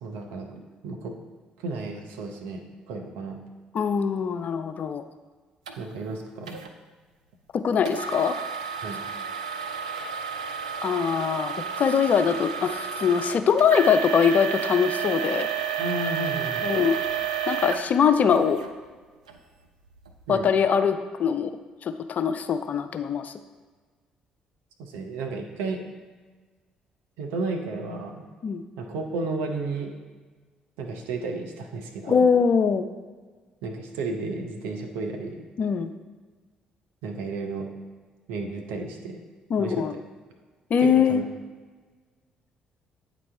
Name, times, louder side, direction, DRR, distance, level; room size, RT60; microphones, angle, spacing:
voice 1, 0.0-1.1 1.6-3.4 5.8-6.6 8.8-9.0 15.8-16.7 20.3-20.5 24.8-25.8 27.2-28.3 28.8-29.9 30.8-32.3 33.6-35.4 37.0-37.7 38.3-39.2 39.6-39.9 40.8-41.2, right 3 dB, 70° right, 3 dB, 0.7 m, -33 dB
voice 2, 3.7-5.0 7.5-8.3 10.8-15.5 16.6-17.0 17.5-18.6 20.3-21.5 21.8-23.3 28.4-28.6 32.1-32.9 35.6-35.9 39.5-39.9 40.7-41.2, left 6 dB, 45° left, 10 dB, 0.4 m, -22 dB
sound 1, 5.7-5.8 6.5-6.7 7.9-18.7 19.3-19.4 20.0-20.1, right 7 dB, 85° right, 0.3 m, -31 dB
8.6 x 4.1 x 3.3 m, 1.4 s
figure-of-eight pair, 45°, 4 cm